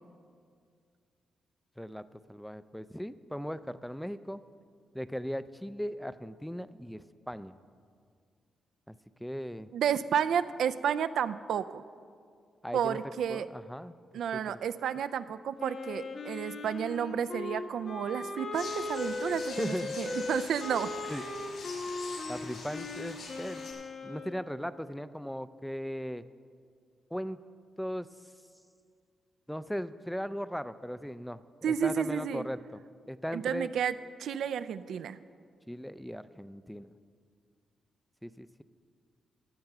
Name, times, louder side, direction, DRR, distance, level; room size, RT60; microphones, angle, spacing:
voice 1, 1.8-4.4 4.9-7.6 8.9-9.7 12.6-13.0 13.3-13.9 14.3-14.6 19.6-20.0 21.1-21.5 22.3-23.7 24.0-26.2 27.1-27.4 27.8-28.1 29.5-31.4 31.7-32.8 33.1-33.7 35.7-36.9 38.2-38.6, equal, ahead, 14 dB, 0.3 m, -38 dB
voice 2, 9.7-11.8 12.7-13.5 14.1-20.9 31.6-32.5 33.3-35.2, right 8 dB, 80° right, 14 dB, 0.3 m, -31 dB
Wind instrument woodwind instrument, 15.6-24.4, left 3 dB, 60° left, 1.1 m, -38 dB
sound 1, 18.5-23.7, left 3 dB, 85° left, 2.4 m, -45 dB
14.5 x 6.6 x 5.9 m, 2.2 s
cardioid pair, 100°, 0 cm